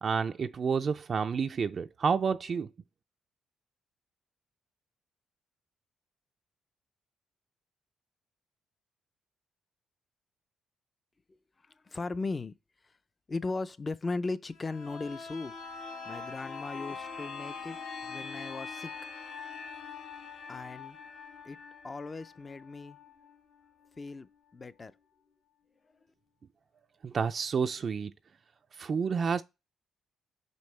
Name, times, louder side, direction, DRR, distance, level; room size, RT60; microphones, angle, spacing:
voice 1, 0.0-2.7 27.0-28.1 28.7-29.4, right 6 dB, 45° right, 0.4 m, -29 dB
voice 2, 11.9-12.5 13.3-15.5 16.1-17.8 18.1-18.9 20.5-21.0 21.4-21.6 21.8-23.0 24.0-24.9, left 3 dB, 30° left, 0.5 m, -37 dB
sound 1, 14.5-24.1 24.5-24.6, left 5 dB, 65° left, 1.3 m, -43 dB
5.6 x 5.3 x 3.2 m
cardioid pair, 90°, 0 cm